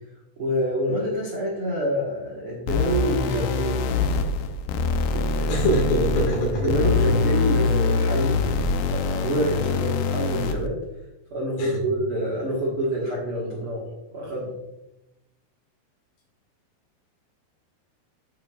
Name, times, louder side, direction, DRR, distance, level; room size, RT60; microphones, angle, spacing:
voice 1, 0.4-3.9 5.1-5.7 6.6-8.5 8.9-10.8 11.3-14.5, right 1 dB, 65° right, -4 dB, 1.3 m, -27 dB
sound 1, 2.7-10.7, left 4 dB, 80° left, 2.3 m, -24 dB
voice 2, 5.5-6.8 11.6-11.8, equal, 60° left, -1 dB, 3.4 m, -23 dB
9.2 x 8.6 x 2.4 m, 0.91 s
omnidirectional pair, 4.9 m